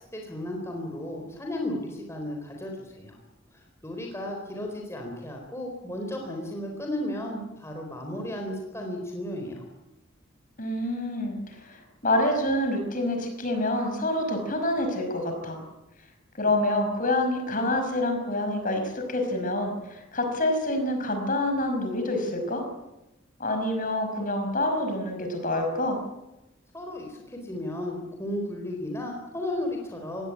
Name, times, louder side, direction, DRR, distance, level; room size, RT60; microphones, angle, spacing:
voice 1, 0.1-3.2 3.8-9.6 26.7-30.3, left 1 dB, 15° left, 0 dB, 4.2 m, -34 dB
voice 2, 10.6-15.6 16.4-22.6 23.4-26.0, left 1 dB, 40° left, 5 dB, 5.4 m, -27 dB
20.5 x 17.5 x 9.7 m, 0.97 s
head